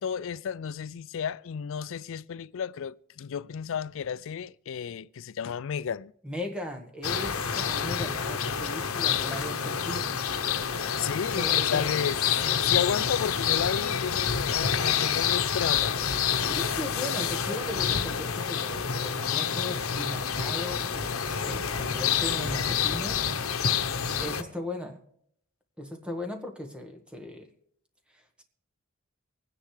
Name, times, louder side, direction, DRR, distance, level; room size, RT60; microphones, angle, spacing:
voice 1, 0.0-6.1 11.0-16.0, left 7 dB, 65° left, 0.4 m, -32 dB
voice 2, 6.2-10.2 11.4-11.9 16.3-23.2 24.2-25.0 25.8-27.5 28.1-28.4, left 1 dB, 5° right, 1.5 m, -38 dB
sound 1, 7.0-24.4, left 7 dB, 90° left, 0.9 m, -28 dB
24.0 x 9.8 x 3.2 m
head